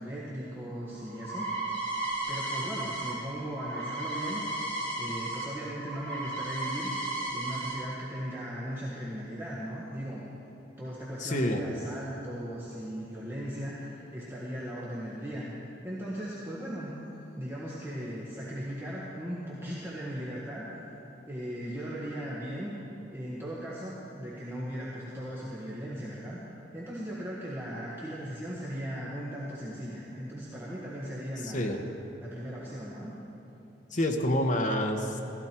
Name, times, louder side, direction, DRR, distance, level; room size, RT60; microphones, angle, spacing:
voice 1, 0.0-1.8 2.3-4.4 5.0-6.9 7.3-10.2 10.8-15.5 15.8-17.0 17.4-20.7 21.3-22.7 23.1-26.4 26.7-31.8 32.2-33.1, equal, 10° right, -7 dB, 1.4 m, -38 dB
sound 1, 0.7-5.4 5.7-7.8, right 2 dB, 10° left, 3.0 m, -34 dB
voice 2, 11.2-11.6 31.4-31.8 33.9-35.2, left 1 dB, 40° left, 4 dB, 1.1 m, -28 dB
15.5 x 14.0 x 4.5 m, 2.9 s
head